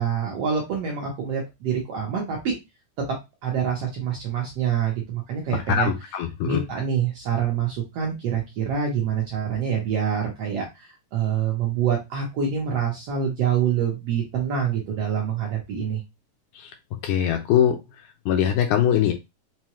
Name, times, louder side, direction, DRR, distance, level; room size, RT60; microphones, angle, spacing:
voice 1, 0.0-2.5 3.4-5.9 6.4-16.0, right 8 dB, 70° right, -1 dB, 1.5 m, -26 dB
voice 2, 5.7-6.6 16.6-16.7 17.0-17.8 18.3-19.1, left 9 dB, 80° left, 4 dB, 1.9 m, -22 dB
5.6 x 2.2 x 3.0 m, 0.22 s
omnidirectional pair, 3.8 m